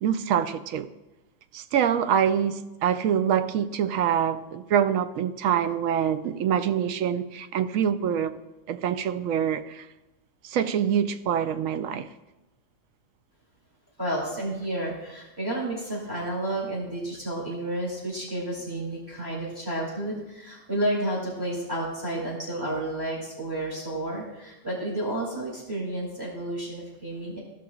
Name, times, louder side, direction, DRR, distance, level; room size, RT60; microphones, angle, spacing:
voice 1, 0.0-0.9 1.5-8.4 8.7-9.9 10.4-12.1, right 8 dB, 85° right, 1.0 m, -25 dB
voice 2, 14.0-27.4, right 1 dB, 15° right, 2.5 m, -31 dB
16.0 x 6.0 x 2.3 m
omnidirectional pair, 1.3 m